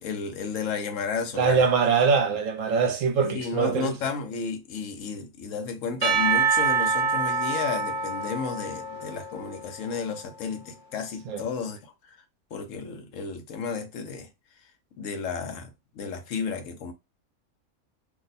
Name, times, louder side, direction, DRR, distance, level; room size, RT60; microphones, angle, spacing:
voice 1, 0.0-1.7 3.2-12.2 12.5-14.3 15.0-16.9, left 5 dB, 70° left, 1.0 m, -32 dB
voice 2, 1.4-3.9 11.3-11.4, right 5 dB, 70° right, 1.0 m, -23 dB
Percussion / Church bell, 6.0-10.2, right 5 dB, 50° right, 1.1 m, -26 dB
2.6 x 2.1 x 4.0 m
omnidirectional pair, 1.5 m